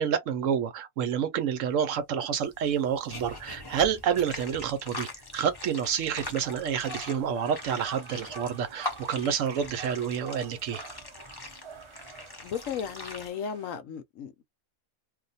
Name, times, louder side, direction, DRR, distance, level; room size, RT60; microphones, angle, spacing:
voice 1, 0.0-10.8, right 8 dB, 70° right, 0.9 m, -29 dB
sound 1, 2.4-13.3, left 2 dB, 25° left, 0.5 m, -42 dB
sound 2, 6.1-13.8, right 4 dB, 45° right, 0.3 m, -47 dB
voice 2, 12.4-14.4, left 7 dB, 70° left, 1.0 m, -35 dB
2.5 x 2.2 x 4.0 m
omnidirectional pair, 1.5 m